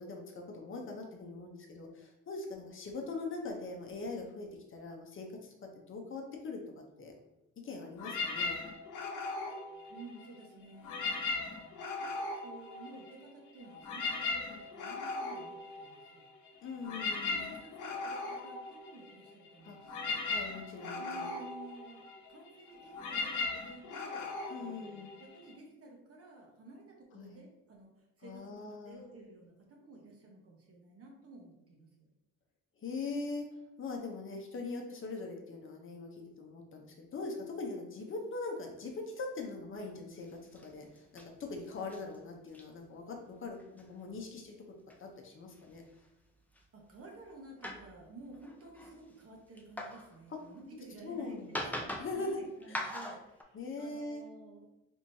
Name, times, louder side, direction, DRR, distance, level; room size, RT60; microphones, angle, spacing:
voice 1, 0.0-5.6 5.9-7.1 7.6-8.6 16.6-17.4 19.6-19.8 20.2-21.3 24.5-25.1 27.1-27.4 28.2-29.0 32.8-33.5 33.8-44.6 45.0-45.8 51.0-51.5 52.0-52.4 52.7-52.9 53.5-54.2, left 3 dB, 45° left, 2 dB, 0.7 m, -42 dB
sound 1, 8.0-10.4 10.8-13.3 13.6-25.5, left 3 dB, 80° left, 0.8 m, -38 dB
voice 2, 9.9-16.3 16.9-20.2 20.8-27.9 28.2-32.1 46.7-54.8, right 2 dB, 50° right, 0 dB, 1.0 m, -53 dB
sound 2, 39.9-40.0 40.2-40.7 41.0-41.3 41.5-42.2 42.5-42.7 43.6-43.9 44.9-45.0 45.5-46.1 46.5-46.6 47.1-47.3 47.6-50.8 51.4-52.2 52.6-53.4, left 1 dB, 5° left, 0.4 m, -42 dB
3.5 x 3.0 x 2.7 m, 0.93 s
cardioid pair, 90°, 30 cm